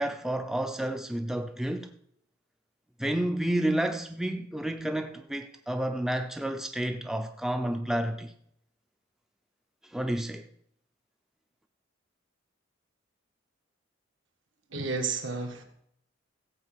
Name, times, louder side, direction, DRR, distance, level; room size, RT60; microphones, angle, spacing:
voice 1, 0.0-1.9 3.0-8.3 9.9-10.5, right 1 dB, ahead, 0.5 m, -30 dB
voice 2, 14.7-15.6, right 4 dB, 70° right, 1.8 m, -31 dB
15.0 x 5.1 x 7.5 m
head